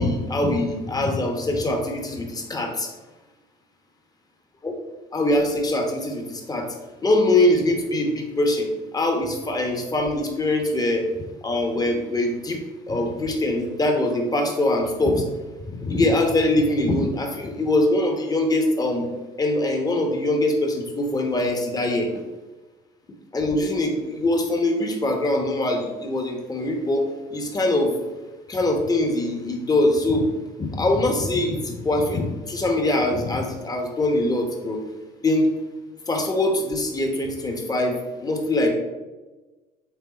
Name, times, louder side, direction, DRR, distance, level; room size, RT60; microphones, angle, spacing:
voice 1, 0.0-2.9 4.6-4.7 5.1-6.7 7.0-8.7 8.9-11.1 11.4-12.6 12.9-15.2 15.7-19.1 19.4-22.2 23.3-27.9 28.5-30.3 30.6-34.8 35.2-35.5 36.1-38.7, left 1 dB, 20° left, 3 dB, 1.2 m, -23 dB
8.2 x 3.6 x 4.2 m, 1.2 s
cardioid pair, 110°, 17 cm